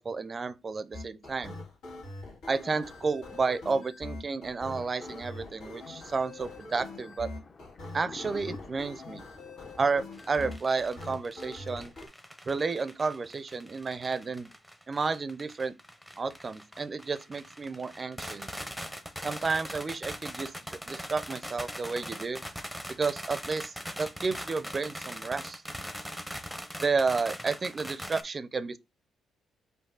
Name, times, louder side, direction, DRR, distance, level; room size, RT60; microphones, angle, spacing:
voice 1, 0.0-1.6 2.5-7.3 7.9-9.2 9.8-11.9 12.5-14.5 14.9-15.7 16.2-18.5 19.2-22.4 22.9-25.6 26.8-28.8, right 4 dB, 35° right, 0.5 m, -31 dB
sound 1, 0.9-12.1, left 2 dB, 80° left, 2.2 m, -43 dB
Thunder, 4.8-10.5, left 3 dB, 40° left, 0.8 m, -49 dB
sound 2, 10.1-28.2, equal, ahead, 0.7 m, -41 dB
5.3 x 2.6 x 3.8 m
cardioid pair, 90°, 0 cm